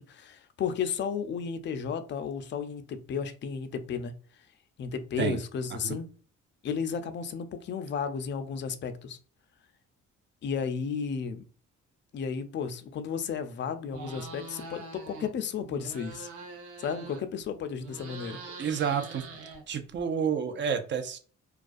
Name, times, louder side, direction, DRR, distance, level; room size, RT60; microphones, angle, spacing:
voice 1, 0.1-4.1 4.8-6.1 6.6-9.2 10.4-11.4 12.1-16.3 16.8-18.4, left 6 dB, 40° left, 0.4 m, -33 dB
sound 1, 13.9-15.3 15.6-17.4 17.8-20.0, right 3 dB, 90° right, 0.8 m, -44 dB
voice 2, 18.6-19.2 19.7-21.2, right 7 dB, 40° right, 0.5 m, -29 dB
2.3 x 2.3 x 2.4 m
cardioid pair, 90°, 30 cm